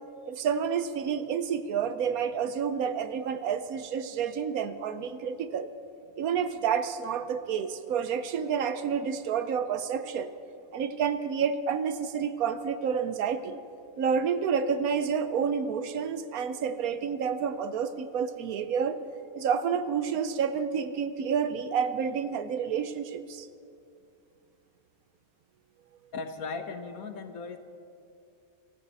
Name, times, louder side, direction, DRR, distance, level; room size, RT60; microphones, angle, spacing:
voice 1, 0.3-5.7 6.2-10.3 10.7-13.6 14.0-19.0 19.3-23.5, right 7 dB, 85° right, 11 dB, 1.2 m, -29 dB
voice 2, 26.1-27.6, left 4 dB, 80° left, 7 dB, 1.5 m, -37 dB
24.5 x 14.0 x 4.1 m, 2.6 s
omnidirectional pair, 1.5 m